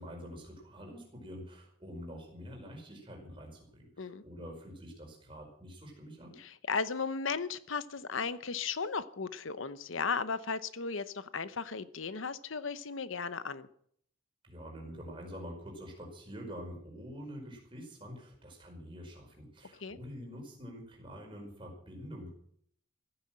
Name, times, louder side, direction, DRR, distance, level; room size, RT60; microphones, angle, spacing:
voice 1, 0.0-6.4 14.4-22.3, equal, 25° right, 0 dB, 5.0 m, -46 dB
voice 2, 6.4-13.7 19.8-20.0, left 5 dB, 80° left, 14 dB, 0.9 m, -36 dB
15.5 x 10.0 x 7.6 m, 0.66 s
head